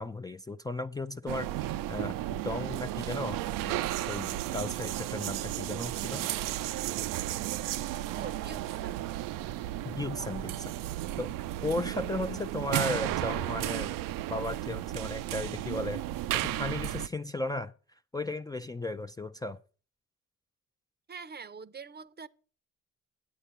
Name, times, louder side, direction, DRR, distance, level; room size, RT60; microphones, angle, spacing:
voice 1, 0.0-1.5 1.9-6.3 9.8-10.7 11.2-11.4 11.6-13.9 14.3-16.0 16.3-17.7 18.1-19.6, left 2 dB, 10° left, 0.4 m, -35 dB
sound 1, 1.3-17.1, right 14 dB, 80° right, 0.5 m, -34 dB
voice 2, 8.1-9.0 21.1-22.3, right 5 dB, 30° right, 0.6 m, -44 dB
9.6 x 8.1 x 5.7 m
supercardioid pair, 55°, 32 cm